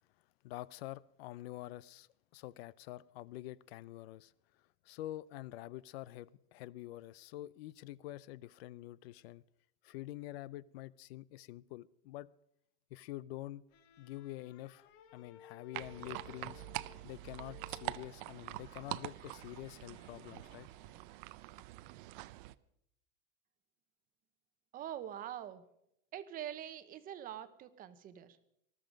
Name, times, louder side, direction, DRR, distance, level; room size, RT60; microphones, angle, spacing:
voice 1, 0.4-4.3 4.8-9.4 9.8-12.3 12.9-13.6 14.0-16.6 17.0-20.7, left 15 dB, 65° left, 0.6 m, -47 dB
sound 1, 13.7-21.2, left 9 dB, 45° left, 1.5 m, -60 dB
sound 2, 15.7-22.5, right 18 dB, 50° right, 0.6 m, -45 dB
voice 2, 24.7-25.6 26.1-28.4, right 10 dB, 25° right, 0.9 m, -44 dB
19.5 x 13.5 x 5.2 m
supercardioid pair, 165°, 33 cm